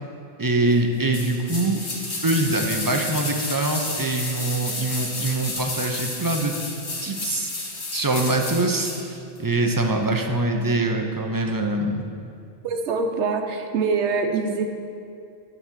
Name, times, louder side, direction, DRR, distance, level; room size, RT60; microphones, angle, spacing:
voice 1, 0.4-1.9 2.2-6.5 7.0-7.5 7.9-12.0, right 2 dB, 25° right, 3 dB, 0.5 m, -24 dB
sound 1, 1.1-9.1 9.4-9.5, left 2 dB, 80° left, 1.7 m, -31 dB
voice 2, 12.6-14.6, right 4 dB, 85° right, 5 dB, 1.1 m, -24 dB
9.9 x 4.0 x 7.2 m, 2.6 s
omnidirectional pair, 1.1 m